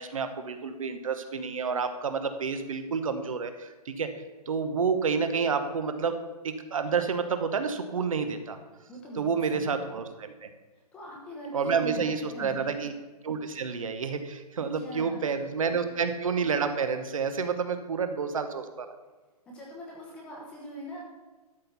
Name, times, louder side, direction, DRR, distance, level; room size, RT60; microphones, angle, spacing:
voice 1, 0.0-4.1 4.5-6.2 6.4-8.6 9.2-10.5 11.5-12.9 13.2-18.9, right 5 dB, 55° right, 8 dB, 1.1 m, -29 dB
voice 2, 8.9-9.9 10.9-12.7 14.7-15.3 19.5-21.0, right 1 dB, 5° left, -3 dB, 0.9 m, -42 dB
12.5 x 4.5 x 6.8 m, 1.3 s
hypercardioid pair, 175°, 20 cm